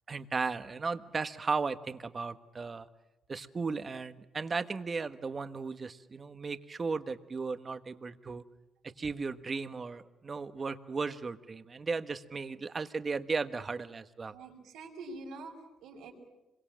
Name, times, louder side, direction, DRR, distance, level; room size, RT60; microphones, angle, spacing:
voice 1, 0.1-2.9 3.3-8.4 9.0-14.3, right 4 dB, 35° right, 10 dB, 1.3 m, -35 dB
voice 2, 14.3-16.1, right 2 dB, 85° right, 0 dB, 5.3 m, -45 dB
26.0 x 23.0 x 7.6 m, 1.1 s
cardioid pair, 90°, 0 cm